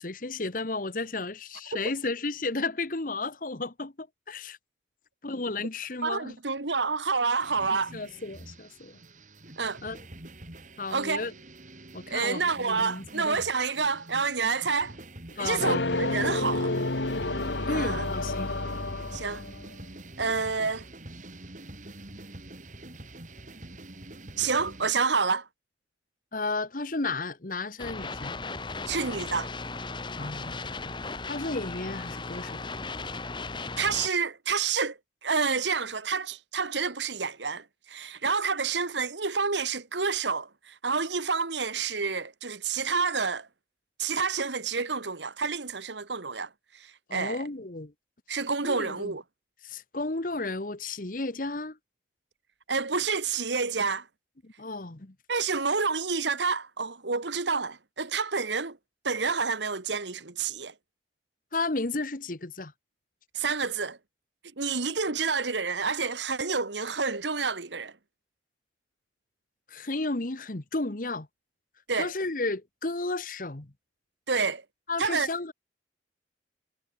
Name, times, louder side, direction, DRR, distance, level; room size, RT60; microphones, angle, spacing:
voice 1, 0.0-4.6 5.2-6.4 7.7-9.0 9.8-10.0 10.8-11.3 11.9-13.4 15.3-15.8 17.7-18.5 26.3-28.4 30.2-30.9 31.3-32.6 47.1-47.9 48.6-49.1 49.6-51.8 54.4-55.1 61.5-62.7 69.7-71.3 72.0-73.7 74.9-75.5, left 3 dB, 50° left, 1.3 m, -33 dB
voice 2, 6.0-7.9 9.6-9.8 10.9-11.3 12.1-15.0 15.4-16.7 17.7-18.1 19.1-19.4 20.2-20.9 24.4-25.5 28.9-29.5 33.8-43.5 44.0-47.4 48.3-49.2 52.7-54.1 55.3-58.8 59.0-60.7 63.3-64.0 64.6-67.9 71.9-72.1 74.3-74.6 75.0-75.3, right 5 dB, 90° right, 1.7 m, -29 dB
sound 1, 7.4-24.9, right 1 dB, 45° right, 3.6 m, -46 dB
sound 2, 15.6-19.7, left 2 dB, 85° left, 2.2 m, -30 dB
sound 3, 27.8-34.1, left 3 dB, 25° left, 1.5 m, -36 dB
head